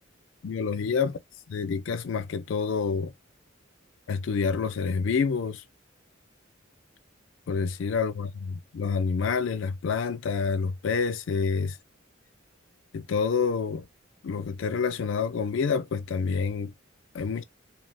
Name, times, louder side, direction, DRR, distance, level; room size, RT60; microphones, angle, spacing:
voice 1, 0.4-1.1 1.5-3.1 4.1-5.6 7.5-11.8 12.9-13.9 14.2-16.7 17.1-17.4, left 5 dB, 70° left, 0.4 m, -28 dB
3.3 x 2.3 x 2.5 m
head